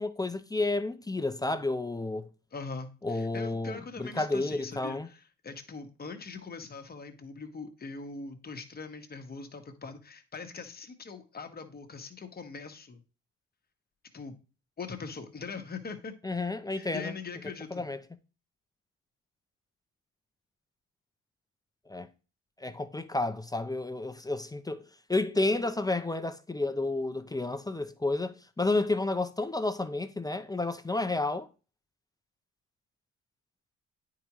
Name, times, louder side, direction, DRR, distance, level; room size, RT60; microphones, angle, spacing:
voice 1, 0.0-2.3 3.0-5.1 16.2-17.1 17.7-18.0 21.9-22.1 22.6-31.5, left 2 dB, 15° left, 0.5 m, -31 dB
voice 2, 2.5-13.0 14.1-14.4 14.8-16.1 16.7-17.8, left 4 dB, 30° left, 1.2 m, -42 dB
9.3 x 4.8 x 3.0 m
cardioid pair, 90°, 30 cm